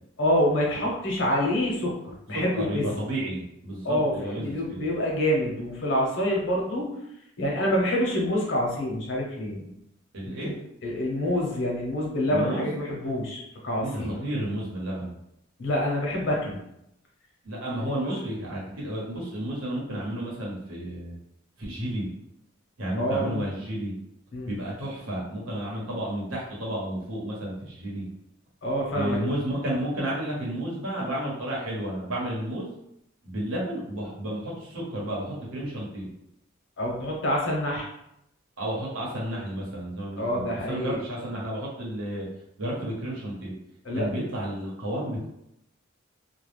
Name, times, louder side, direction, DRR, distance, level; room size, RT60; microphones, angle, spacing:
voice 1, 0.2-1.9 2.3-2.9 3.8-6.9 7.4-9.7 10.2-10.5 10.8-14.2 15.6-16.6 17.7-17.9 23.0-23.4 24.3-24.5 28.6-29.2 36.8-37.9 40.2-41.0 43.8-44.1, equal, 60° left, -2 dB, 0.8 m, -26 dB
voice 2, 2.3-4.9 10.1-10.6 12.3-12.7 13.8-15.1 17.4-21.2 21.6-22.1 22.8-23.9 24.4-28.1 28.9-32.7 33.2-36.1 38.6-42.3 42.6-43.5 43.9-45.3, right 1 dB, 80° right, -5 dB, 1.0 m, -32 dB
2.3 x 2.1 x 3.2 m, 0.79 s
head